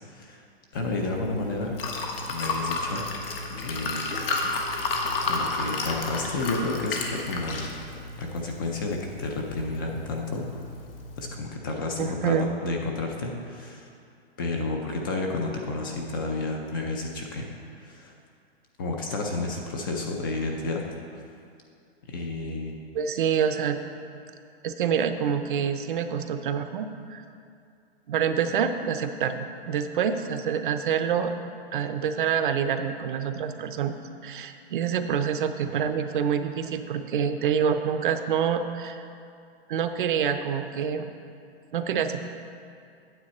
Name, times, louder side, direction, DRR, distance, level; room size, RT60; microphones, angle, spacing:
voice 1, 0.0-0.4 0.7-1.8 2.3-4.4 5.3-10.6 11.2-13.9 14.4-18.1 18.8-20.8 22.0-22.7, left 2 dB, 20° left, 1 dB, 0.4 m, -31 dB
Liquid, 0.7-11.3, left 3 dB, 60° left, 1.3 m, -32 dB
voice 2, 12.0-12.5 22.9-23.8 24.6-27.2 28.1-31.3 31.7-34.0 34.2-39.1 39.7-41.1 41.7-42.2, right 7 dB, 55° right, 8 dB, 0.6 m, -27 dB
9.1 x 7.6 x 4.2 m, 2.4 s
hypercardioid pair, 165°, 32 cm